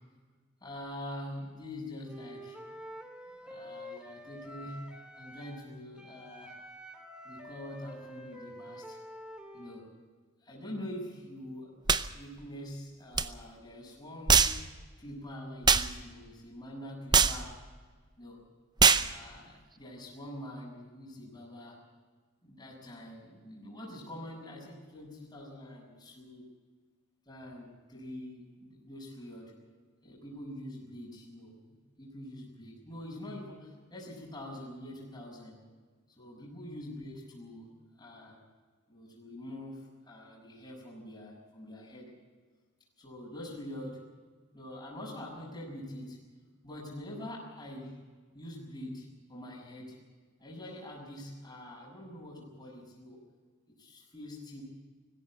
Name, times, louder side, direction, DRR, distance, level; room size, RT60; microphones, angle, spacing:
voice 1, 0.6-2.6 3.4-4.8 5.2-6.5 7.2-9.0 9.5-9.9 10.4-11.7 12.1-14.6 15.0-17.5 18.2-18.4 18.9-21.8 22.4-26.5 27.3-29.5 30.0-31.6 32.0-35.6 36.2-37.7 37.9-38.4 38.9-42.1 43.0-44.0 44.5-46.2 46.6-48.0 48.3-50.0 50.4-53.2 53.8-54.6, left 1 dB, 20° left, -4 dB, 6.0 m, -45 dB
Wind instrument woodwind instrument, 2.0-5.7 6.0-9.9, equal, 5° right, 2.2 m, -48 dB
sound 1, 11.9-12.1 13.1-13.3 14.3-14.6 15.6-15.9 17.1-17.4 18.8-19.1, right 5 dB, 20° right, 0.6 m, -22 dB
19.5 x 16.0 x 8.5 m, 1.4 s
head